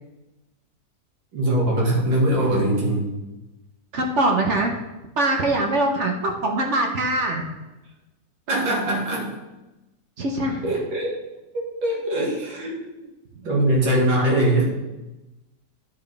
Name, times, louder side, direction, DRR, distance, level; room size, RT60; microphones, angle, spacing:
voice 1, 1.3-3.1 8.5-9.3 10.6-11.1 11.8-13.0 13.4-14.6, right 1 dB, 85° right, -3 dB, 2.5 m, -22 dB
voice 2, 3.9-4.7 5.2-7.5 10.2-10.7, right 2 dB, 55° right, 2 dB, 0.9 m, -23 dB
10.0 x 4.5 x 3.4 m, 1.0 s
omnidirectional pair, 2.0 m